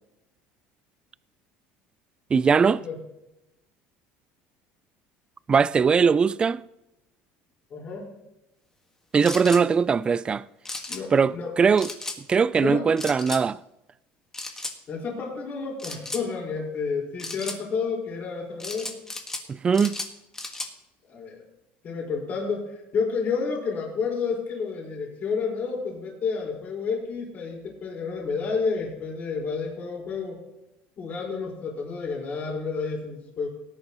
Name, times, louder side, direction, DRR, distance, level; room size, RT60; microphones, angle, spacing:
voice 1, 2.3-2.8 5.5-6.6 9.1-10.4 11.1-11.9 12.3-13.6 19.5-20.0, right 6 dB, 20° right, 0.3 m, -20 dB
voice 2, 7.7-8.1 10.9-11.5 12.6-13.2 14.9-18.9 21.0-21.4 21.8-30.4 31.0-33.5, left 5 dB, 40° left, 4.7 m, -30 dB
sound 1, 9.2-9.6 10.6-11.0 11.8-12.2 13.0-13.4 14.3-14.7 15.8-16.2 17.2-17.6 18.6-19.4 19.7-20.7, left 2 dB, 10° left, 1.6 m, -35 dB
18.5 x 10.5 x 3.0 m
cardioid pair, 130°, 4 cm